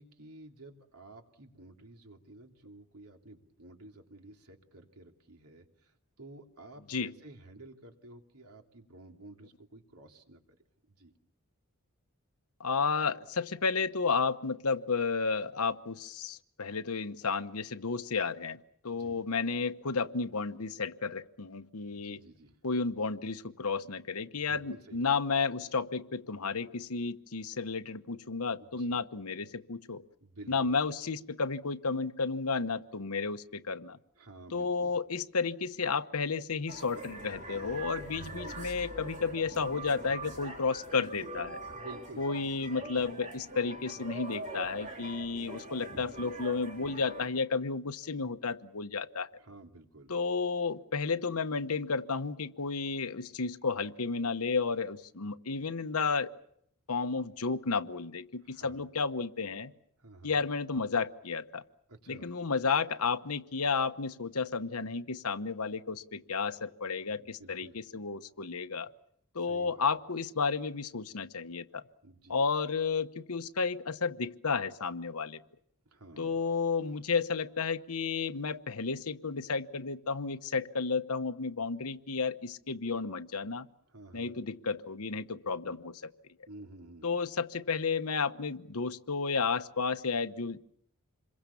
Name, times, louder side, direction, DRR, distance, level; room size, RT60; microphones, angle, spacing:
voice 1, 0.0-5.9 6.2-10.4 10.9-11.1 19.0-19.2 21.9-22.6 24.3-25.0 28.6-29.0 30.2-30.7 34.2-35.0 38.2-38.4 41.7-42.2 42.8-42.9 49.4-50.1 58.4-58.8 60.0-60.4 61.9-62.3 67.2-67.8 69.5-69.9 72.0-72.4 75.9-76.5 83.9-84.3 86.5-87.2, right 2 dB, 85° right, 3 dB, 3.0 m, -52 dB
voice 2, 12.6-18.6 18.8-22.2 22.6-30.0 30.5-34.0 34.5-41.6 42.2-49.3 50.1-56.3 56.9-59.7 60.2-61.6 62.1-68.9 69.3-71.8 72.3-75.4 76.2-83.7 84.1-86.1 87.0-90.6, left 4 dB, 80° left, 11 dB, 1.1 m, -32 dB
sound 1, 36.7-47.3, right 2 dB, 35° right, 3.8 m, -43 dB
27.5 x 22.5 x 7.1 m, 0.70 s
head